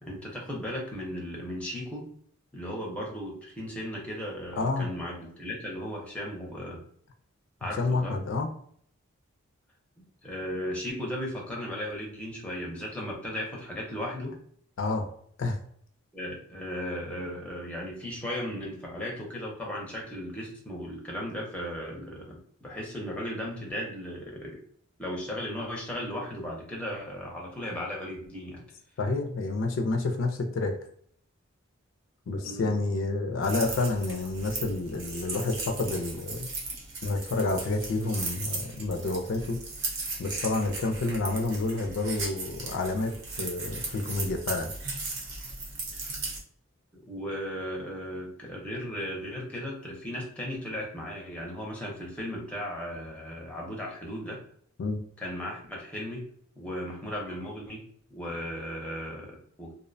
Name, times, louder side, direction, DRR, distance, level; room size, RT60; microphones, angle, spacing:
voice 1, 0.0-2.1 2.5-6.8 7.6-8.1 10.0-14.4 16.1-24.6 25.0-28.6 32.4-32.7 46.9-54.4 55.2-56.2 56.6-57.8 58.1-59.7, equal, 5° left, -2 dB, 0.5 m, -36 dB
voice 2, 4.6-4.9 7.6-8.5 14.8-15.1 15.4-15.6 29.0-30.7 32.3-36.5 37.0-39.6 40.2-44.7 54.8-55.0, left 3 dB, 60° left, 5 dB, 0.3 m, -29 dB
sound 1, 33.4-46.4, right 3 dB, 60° right, 0.7 m, -37 dB
2.6 x 2.0 x 2.5 m, 0.62 s
head